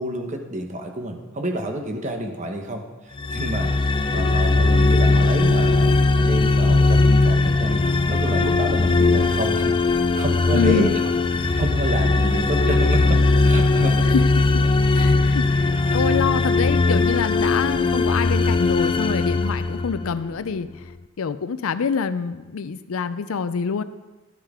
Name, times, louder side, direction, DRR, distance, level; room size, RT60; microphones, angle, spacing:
voice 1, 0.0-2.8 3.3-3.7 4.1-10.9 11.6-14.1, right 1 dB, 35° right, 4 dB, 1.1 m, -28 dB
sound 1, 3.2-20.3, left 3 dB, 25° left, 0.3 m, -19 dB
voice 2, 10.5-10.9 14.1-14.6 14.9-20.9 21.2-23.8, left 5 dB, 90° left, 13 dB, 0.5 m, -26 dB
12.0 x 8.8 x 3.7 m, 1.2 s
head